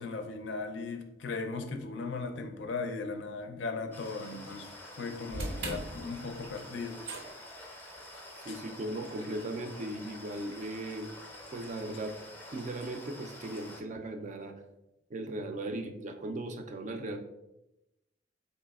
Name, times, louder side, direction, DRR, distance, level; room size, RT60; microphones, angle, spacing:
voice 1, 0.0-7.6 8.5-8.6, left 4 dB, 70° left, 0.4 m, -38 dB
sound 1, 3.9-13.8, left 1 dB, 10° left, 0.5 m, -48 dB
sound 2, 5.3-11.6, right 2 dB, 85° right, 0.6 m, -44 dB
voice 2, 8.4-11.1 11.5-12.2 12.5-14.6 15.1-17.2, right 1 dB, 40° right, 0.4 m, -37 dB
3.9 x 3.0 x 2.3 m
head